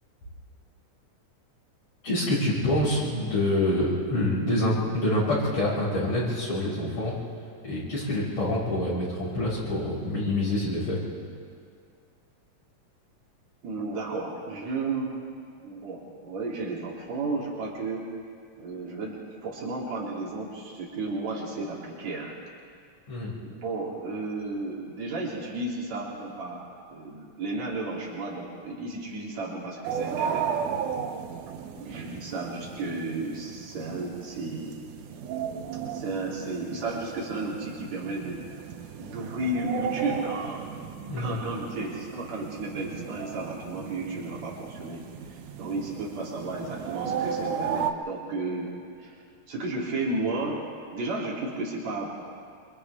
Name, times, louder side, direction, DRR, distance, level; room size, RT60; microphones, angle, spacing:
voice 1, 2.0-7.1 7.6-11.0 23.1-23.3 41.1-41.3, left 1 dB, 60° left, -11 dB, 7.4 m, -26 dB
voice 2, 13.6-15.2 15.6-18.1 18.6-22.3 23.4-30.5 31.7-34.8 35.9-38.5 39.0-40.7 41.2-48.7 49.0-49.2 49.5-50.6 50.9-52.1, right 2 dB, 60° right, -5 dB, 4.8 m, -33 dB
sound 1, 29.8-47.9, right 7 dB, 85° right, 2.5 m, -35 dB
29.0 x 26.0 x 3.7 m, 2.3 s
omnidirectional pair, 3.4 m